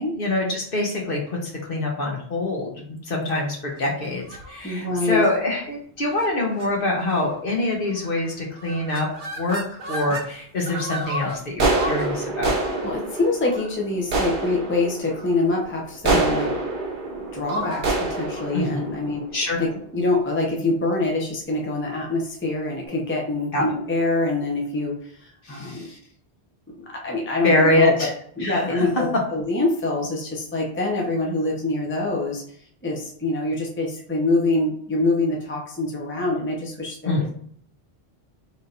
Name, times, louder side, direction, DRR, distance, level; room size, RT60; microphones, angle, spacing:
voice 1, 0.2-9.6 9.9-12.6 16.1-16.4 18.5-18.9 19.3-19.6 23.5-23.6 25.4-26.0 27.4-28.1 28.4-28.9 37.0-37.3, left 2 dB, 60° left, -1 dB, 1.2 m, -25 dB
sound 1, 4.2-4.6 5.1-5.4 6.1-6.3 6.6-6.7 7.0-7.4 8.0-8.3 8.6-10.3 10.7-19.8, right 2 dB, 55° right, 0.9 m, -28 dB
voice 2, 4.6-5.2 12.8-16.5 17.3-19.2 19.6-25.9 26.8-28.1 28.4-32.4 32.8-37.3, left 2 dB, 15° left, -1 dB, 0.6 m, -25 dB
3.5 x 2.8 x 3.8 m, 0.62 s
omnidirectional pair, 1.1 m